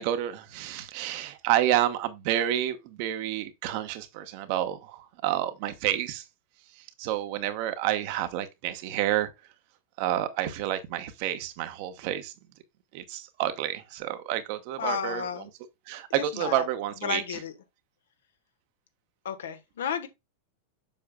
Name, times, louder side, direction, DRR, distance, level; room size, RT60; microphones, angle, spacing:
voice 1, 0.0-6.2 7.0-9.3 10.0-12.3 12.9-15.5 15.9-17.2, right 12 dB, 45° right, 1.2 m, -29 dB
voice 2, 14.8-15.5 16.1-16.6 17.0-17.5 19.2-20.1, left 7 dB, 60° left, 1.3 m, -32 dB
7.3 x 7.0 x 2.3 m
figure-of-eight pair, 90°, 0 cm